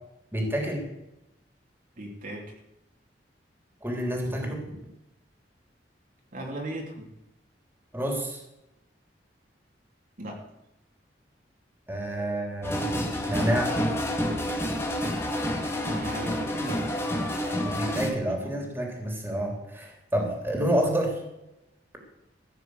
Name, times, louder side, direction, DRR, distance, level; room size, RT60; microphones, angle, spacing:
voice 1, 0.3-0.9 3.8-4.6 7.9-8.4 11.9-12.9 13.3-13.8 17.6-21.2, right 1 dB, 15° right, 1 dB, 3.2 m, -28 dB
voice 2, 2.0-2.5 6.3-7.1 10.2-10.4 15.8-16.9 18.1-18.2 18.4-18.7, right 1 dB, 50° right, -1 dB, 2.9 m, -37 dB
sound 1, 12.6-18.1, equal, 15° left, 2.0 m, -29 dB
15.5 x 6.8 x 7.9 m, 0.89 s
head